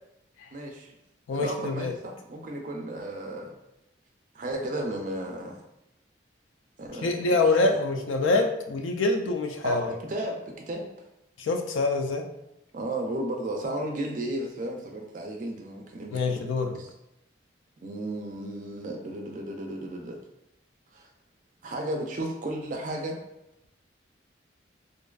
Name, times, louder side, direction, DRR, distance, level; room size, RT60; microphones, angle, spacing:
voice 1, 0.5-0.9 1.3-3.5 4.3-5.6 6.8-7.8 9.6-10.9 12.7-16.4 16.7-16.9 17.8-20.2 20.9-21.1 21.6-23.2, right 1 dB, 40° right, 2 dB, 0.4 m, -34 dB
voice 2, 1.3-1.9 7.0-9.9 11.4-12.2 16.1-16.7, left 3 dB, 85° left, 4 dB, 0.4 m, -25 dB
2.5 x 2.3 x 2.3 m, 0.87 s
head